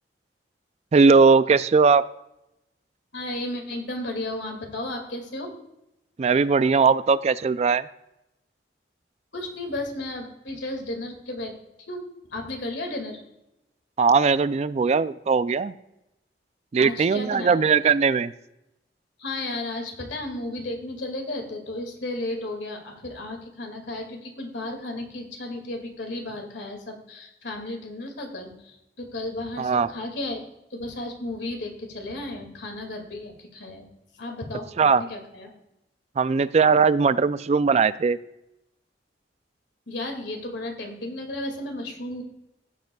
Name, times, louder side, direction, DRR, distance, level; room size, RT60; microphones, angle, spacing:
voice 1, 0.9-2.0 6.2-7.9 14.0-15.7 16.7-18.3 29.6-29.9 34.8-35.0 36.2-38.2, right 5 dB, 40° right, 15 dB, 0.3 m, -19 dB
voice 2, 3.1-5.6 9.3-11.5 11.9-12.0 12.3-13.2 16.8-17.7 19.2-30.4 30.7-33.8 34.1-35.5 39.9-42.2, left 1 dB, 80° left, 3 dB, 2.1 m, -34 dB
15.5 x 7.8 x 2.3 m, 0.88 s
head